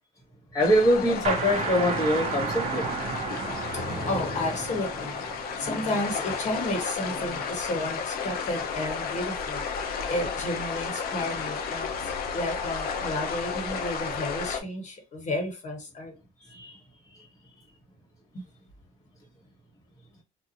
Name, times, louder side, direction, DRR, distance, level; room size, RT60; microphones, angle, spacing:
voice 1, 0.5-2.9 5.7-5.8 16.5-16.8, equal, 20° left, 1.1 m, -24 dB
sound 1, 0.6-14.6, left 6 dB, 65° left, 0.6 m, -33 dB
sound 2, 1.2-6.7, right 5 dB, 40° right, 0.6 m, -33 dB
voice 2, 3.2-5.3 5.6-9.6 10.1-16.1 18.3-18.4, left 1 dB, 45° left, 1.2 m, -32 dB
2.6 x 2.3 x 2.8 m
cardioid pair, 110°, 17 cm